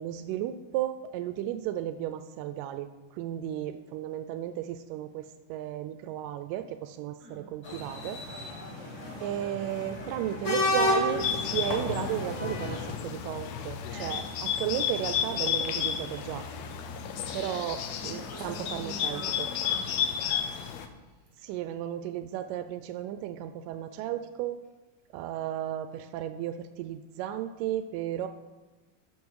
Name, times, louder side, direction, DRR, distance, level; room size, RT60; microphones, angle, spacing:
voice 1, 0.0-2.9 3.1-8.6 9.2-14.2 14.6-16.5 17.3-19.5 21.4-24.6 25.1-28.3, right 11 dB, 90° right, 10 dB, 2.2 m, -34 dB
sound 1, 7.6-13.0, left 1 dB, 35° left, 1.3 m, -31 dB
Bird, 11.2-20.9, left 8 dB, 70° left, 1.7 m, -32 dB
voice 2, 13.9-14.6 17.1-21.3, right 1 dB, 35° right, -5 dB, 5.2 m, -46 dB
12.5 x 7.3 x 4.7 m, 1.2 s
omnidirectional pair, 3.7 m